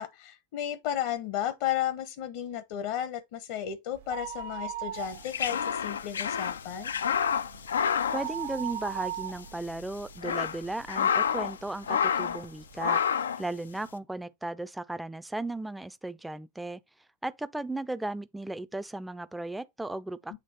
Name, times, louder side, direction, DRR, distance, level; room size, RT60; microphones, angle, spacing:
voice 1, 0.0-6.9 20.3-20.4, left 11 dB, 60° left, 0.8 m, -33 dB
sound 1, 4.0-5.6 5.9-6.0 6.5-10.9 11.4-11.5 12.3-12.4 12.6-12.7, right 11 dB, 80° right, 1.3 m, -38 dB
sound 2, 5.0-9.1 9.4-9.5 10.0-11.6 11.8-12.4 12.8-13.4, left 7 dB, 80° left, 0.3 m, -29 dB
voice 2, 8.1-13.0 13.4-16.8 17.2-20.4, right 2 dB, 5° right, 0.5 m, -36 dB
7.4 x 3.0 x 4.2 m
hypercardioid pair, 85°, 0 cm